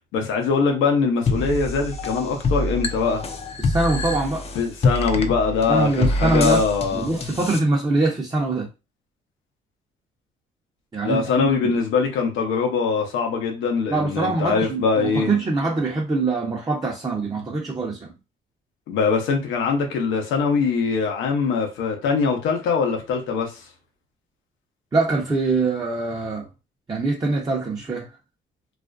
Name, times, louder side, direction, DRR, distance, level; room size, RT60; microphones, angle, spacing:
voice 1, 0.1-3.2 4.5-7.1 11.0-15.3 18.9-23.5, left 5 dB, 85° left, 0.7 m, -22 dB
sound 1, 1.3-7.6, left 2 dB, 30° left, 0.4 m, -26 dB
voice 2, 3.6-4.4 5.7-6.6 6.9-8.7 10.9-11.8 13.9-18.1 24.9-26.5 26.9-28.1, right 3 dB, 20° right, 0.6 m, -23 dB
2.4 x 2.1 x 2.4 m
supercardioid pair, 75°, 19 cm